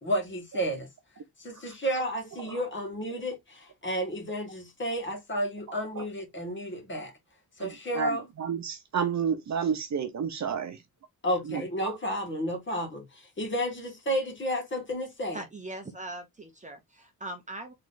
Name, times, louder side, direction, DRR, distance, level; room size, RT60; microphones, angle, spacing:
voice 1, 0.0-0.9 1.4-7.1 7.6-8.2 11.2-15.4, equal, 35° left, 1.8 m, -32 dB
voice 2, 7.6-10.8 11.4-11.9, right 7 dB, 50° right, 0.9 m, -31 dB
voice 3, 15.3-17.7, right 1 dB, 20° right, 0.9 m, -40 dB
3.9 x 3.3 x 3.9 m
wide cardioid pair, 175°, 35 cm